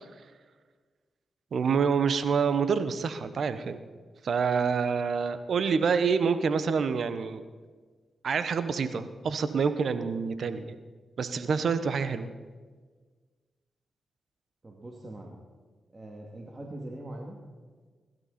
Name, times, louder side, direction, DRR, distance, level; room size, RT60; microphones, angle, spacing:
voice 1, 1.5-3.8 4.2-7.4 8.2-10.8 11.2-12.3, right 5 dB, 70° right, 12 dB, 1.1 m, -27 dB
voice 2, 14.6-15.4 15.9-17.4, right 1 dB, 35° right, -1 dB, 2.6 m, -42 dB
22.0 x 12.0 x 4.3 m, 1.5 s
supercardioid pair, 45°, 0 cm